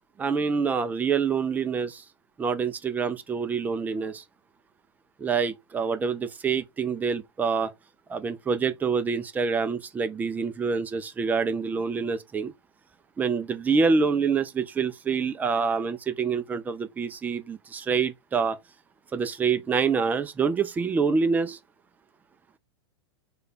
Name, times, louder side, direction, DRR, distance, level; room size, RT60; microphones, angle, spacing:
voice 1, 0.2-2.0 2.4-4.2 5.2-7.7 8.1-12.5 13.2-18.6 19.1-21.6, right 5 dB, 10° right, 0.4 m, -26 dB
3.2 x 2.3 x 4.1 m
figure-of-eight pair, 100°, 14 cm